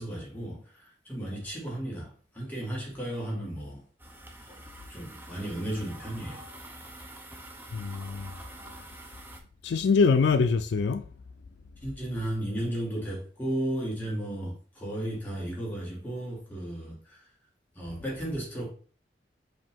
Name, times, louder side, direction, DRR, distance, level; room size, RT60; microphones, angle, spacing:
voice 1, 0.0-3.8 4.4-4.6 4.9-6.4 11.8-17.3 17.7-18.7, right 1 dB, 10° left, 1.6 m, -34 dB
sound 1, 4.0-9.4, right 1 dB, 10° right, 0.5 m, -46 dB
voice 2, 7.7-8.3 9.6-11.1, left 5 dB, 75° left, 0.3 m, -24 dB
5.1 x 2.6 x 3.5 m
head